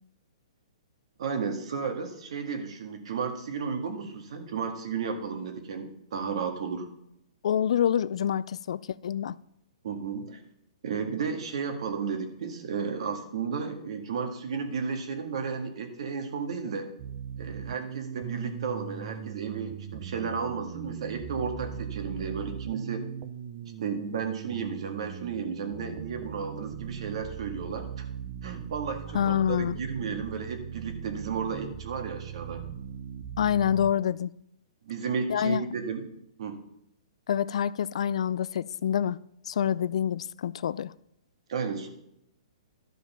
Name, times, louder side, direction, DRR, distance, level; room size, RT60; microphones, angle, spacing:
voice 1, 1.2-6.9 9.8-10.4 10.8-16.9 17.4-23.0 23.6-28.1 28.4-32.7 34.8-36.0 36.4-36.6 41.5-41.9, right 6 dB, 60° right, 1.7 m, -33 dB
voice 2, 7.4-9.4 29.1-29.8 33.4-34.3 35.3-35.6 37.3-39.2 39.5-40.9, left 9 dB, 65° left, 0.3 m, -27 dB
sound 1, 17.0-33.9, right 8 dB, 35° right, 0.6 m, -40 dB
12.5 x 5.1 x 5.7 m
hypercardioid pair, 160°, 4 cm